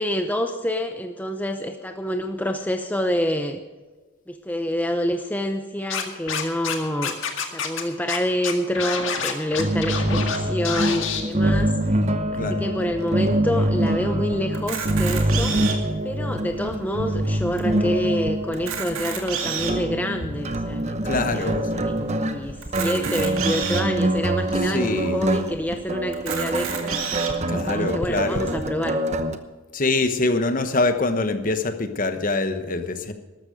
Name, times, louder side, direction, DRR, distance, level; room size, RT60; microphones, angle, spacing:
voice 1, 0.0-3.6 4.3-7.2 7.5-11.7 12.3-15.8 16.0-27.0 27.7-29.0, equal, 10° left, 6 dB, 0.6 m, -27 dB
Scratching (performance technique), 5.9-6.7 7.0-7.8 8.1-8.2 8.4-10.4 10.6-11.2, left 6 dB, 60° left, 1.9 m, -27 dB
sound 1, 9.6-29.4, right 1 dB, 30° right, 0.9 m, -25 dB
Camera, 14.5-15.9 16.6-16.7 16.9-17.0 17.6-17.7 18.5-19.9 20.5-20.6 22.6-23.8 24.6-24.7 24.9-25.0 26.1-27.3, right 7 dB, 70° right, 2.2 m, -29 dB
voice 2, 21.0-21.7 24.6-25.2 27.5-28.5 29.7-33.1, left 2 dB, 40° left, 9 dB, 1.1 m, -24 dB
13.5 x 13.0 x 5.0 m, 1.3 s
head